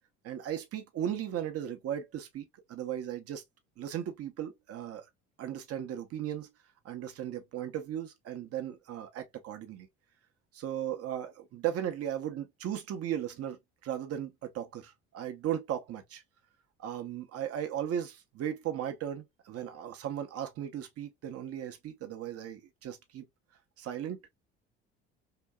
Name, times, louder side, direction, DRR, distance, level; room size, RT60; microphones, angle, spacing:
voice 1, 0.2-3.4 3.8-5.0 5.4-6.5 6.8-9.9 10.5-16.2 16.8-23.2 23.8-24.2, right 10 dB, 50° right, 0.9 m, -36 dB
2.9 x 2.7 x 2.2 m
hypercardioid pair, 65°, 30 cm